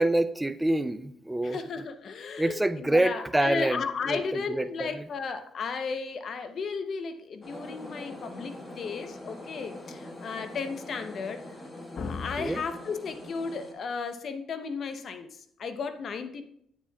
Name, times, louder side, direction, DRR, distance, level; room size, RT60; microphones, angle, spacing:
voice 1, 0.0-1.6 2.4-5.1 12.4-12.6, right 1 dB, 10° right, 13 dB, 0.5 m, -27 dB
voice 2, 1.4-11.4 12.0-16.4, left 5 dB, 55° left, 9 dB, 0.7 m, -34 dB
sound 1, 7.4-13.7, left 1 dB, 30° left, 1.5 m, -43 dB
8.7 x 7.3 x 2.3 m, 0.71 s
supercardioid pair, 70°, 0 cm